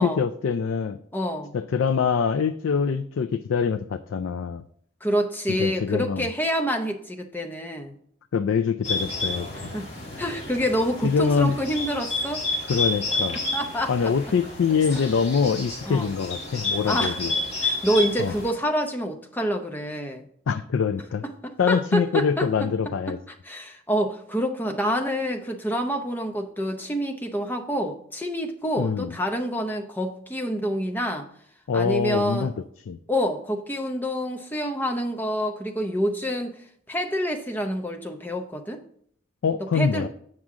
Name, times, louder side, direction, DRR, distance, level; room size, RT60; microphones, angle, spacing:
voice 1, 0.0-1.0 1.5-4.6 5.5-6.3 8.3-9.7 11.0-11.6 12.7-13.4 13.9-17.3 18.2-18.3 20.5-21.2 21.6-23.2 28.8-29.2 31.7-32.5 32.9-33.0 39.4-40.1, left 6 dB, 85° left, 10 dB, 0.4 m, -24 dB
voice 2, 1.1-1.5 5.0-7.9 9.7-9.9 10.2-12.5 13.5-14.1 15.9-16.1 16.9-17.2 17.6-20.3 21.4-22.5 23.4-31.3 31.7-32.5 33.1-38.8 39.7-40.1, equal, 10° left, 4 dB, 0.7 m, -27 dB
Bird, 8.8-18.5, left 2 dB, 35° left, 1.8 m, -30 dB
7.5 x 6.1 x 3.6 m, 0.64 s
head